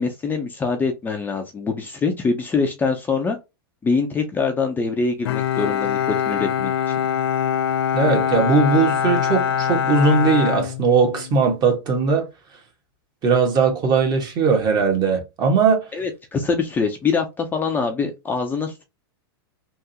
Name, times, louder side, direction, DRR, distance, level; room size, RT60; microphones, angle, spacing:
voice 1, 0.0-3.4 3.8-6.7 15.9-18.8, left 4 dB, 15° left, 0.6 m, -24 dB
Bowed string instrument, 5.2-11.4, left 8 dB, 80° left, 0.4 m, -23 dB
voice 2, 7.9-12.3 13.2-15.9, right 4 dB, 30° right, 1.4 m, -19 dB
3.6 x 2.6 x 2.8 m
hypercardioid pair, 125°, 13 cm